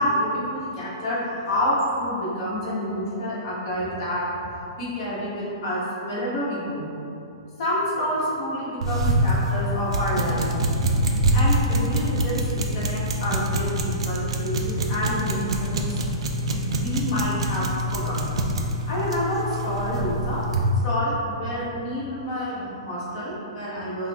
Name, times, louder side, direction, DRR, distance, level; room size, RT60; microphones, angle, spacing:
voice 1, 0.0-4.2 4.8-6.9 7.6-10.4 11.3-16.0 16.5-17.6 17.9-18.5 18.8-20.4 20.8-24.1, equal, 45° left, -9 dB, 1.3 m, -28 dB
sound 1, 8.8-20.7, right 1 dB, 75° right, 0.5 m, -25 dB
5.6 x 2.1 x 3.5 m, 2.7 s
hypercardioid pair, 165°, 3 cm